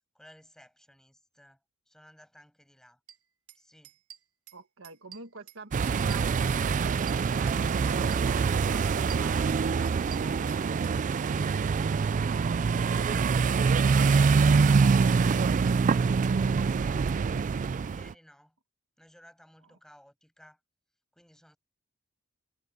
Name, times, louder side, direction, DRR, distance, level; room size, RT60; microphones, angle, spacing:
voice 1, 0.1-1.6 1.9-3.0 3.5-3.9 13.8-16.3 17.0-17.3 17.9-18.6 19.0-20.6 21.1-21.6, equal, ahead, 6.6 m, -56 dB
sound 1, 3.1-3.2 3.5-3.6 3.8-4.6 4.8-5.6 5.8-7.6 7.9-8.6 8.8-11.0, right 10 dB, 80° right, 2.0 m, -49 dB
voice 2, 4.5-11.2 12.9-14.5 19.6-19.7, right 4 dB, 65° right, 1.8 m, -47 dB
sound 2, 5.7-18.1, right 5 dB, 35° right, 0.3 m, -25 dB
head